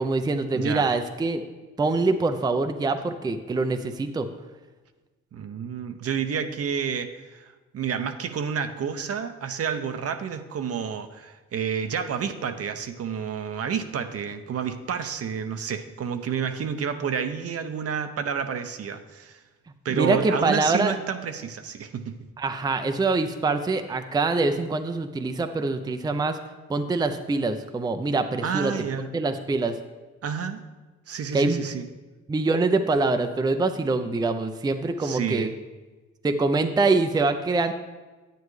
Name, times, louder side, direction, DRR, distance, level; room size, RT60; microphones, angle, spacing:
voice 1, 0.0-1.4 1.8-4.3 19.9-20.9 22.4-26.4 26.7-29.7 31.3-31.6 32.3-35.5 36.2-37.7, right 3 dB, 15° right, 8 dB, 0.5 m, -24 dB
voice 2, 0.5-0.9 5.3-19.4 19.8-22.0 28.4-29.1 30.2-30.6 31.1-31.8 35.0-35.5, right 7 dB, 50° right, 9 dB, 0.7 m, -30 dB
9.3 x 9.1 x 3.2 m, 1.2 s
cardioid pair, 90°, 30 cm